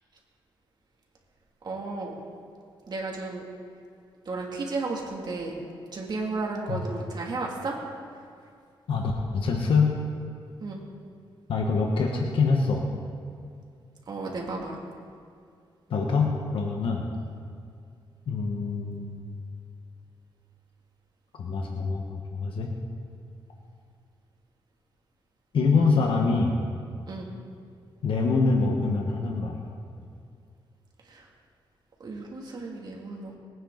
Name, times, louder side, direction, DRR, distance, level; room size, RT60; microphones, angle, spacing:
voice 1, 1.6-2.1 2.9-3.4 4.3-5.5 5.9-7.7 10.6-10.8 14.1-14.8 25.8-26.0 27.1-27.3 31.1-31.3 32.0-33.4, right 3 dB, 50° right, -1 dB, 2.6 m, -33 dB
voice 2, 8.9-10.0 11.5-12.8 15.9-17.0 18.3-19.2 21.3-22.7 25.5-26.6 28.0-29.6, left 4 dB, 75° left, 1 dB, 1.4 m, -25 dB
21.0 x 9.5 x 4.0 m, 2.3 s
cardioid pair, 105°, 9 cm